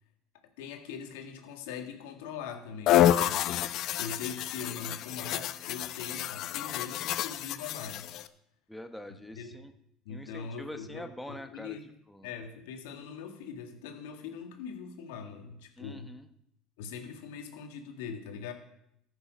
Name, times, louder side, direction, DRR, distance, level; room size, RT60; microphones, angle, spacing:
voice 1, 0.6-8.2 9.4-9.7 10.1-11.9 12.2-16.1 16.8-18.5, left 6 dB, 85° left, 4 dB, 1.8 m, -42 dB
sound 1, 2.9-8.3, left 12 dB, 60° left, 0.6 m, -29 dB
voice 2, 8.7-9.7 10.1-11.8 12.1-12.3 15.8-16.3, left 1 dB, 5° left, 6 dB, 0.9 m, -44 dB
14.0 x 7.2 x 5.1 m, 0.78 s
supercardioid pair, 90°, 0 cm